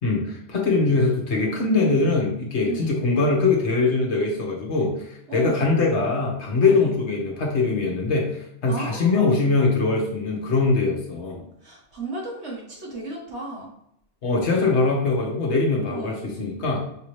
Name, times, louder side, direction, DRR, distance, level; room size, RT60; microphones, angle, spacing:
voice 1, 0.0-11.4 14.2-16.8, left 3 dB, 70° left, -1 dB, 1.4 m, -22 dB
voice 2, 2.6-3.0 5.3-5.8 6.6-7.0 8.7-9.4 11.6-13.7 15.9-16.3, right 2 dB, 70° right, -2 dB, 1.6 m, -34 dB
5.6 x 2.8 x 3.2 m, 0.76 s
omnidirectional pair, 1.2 m